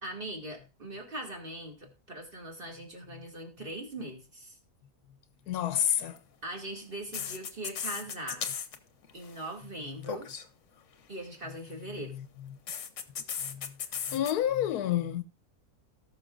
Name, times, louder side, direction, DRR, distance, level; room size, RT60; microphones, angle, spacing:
voice 1, 0.0-4.6 6.4-8.4 9.1-10.3 11.1-12.1, right 1 dB, 35° right, 2.5 m, -41 dB
voice 2, 5.5-6.2 10.0-10.1 12.1-12.2 13.4-13.7 14.1-15.2, left 11 dB, 80° left, 1.2 m, -29 dB
sound 1, 6.0-6.2 7.1-8.8 9.0-9.4 10.0-10.5 12.7-14.3, left 7 dB, 55° left, 1.1 m, -36 dB
18.5 x 6.3 x 2.5 m
omnidirectional pair, 1.7 m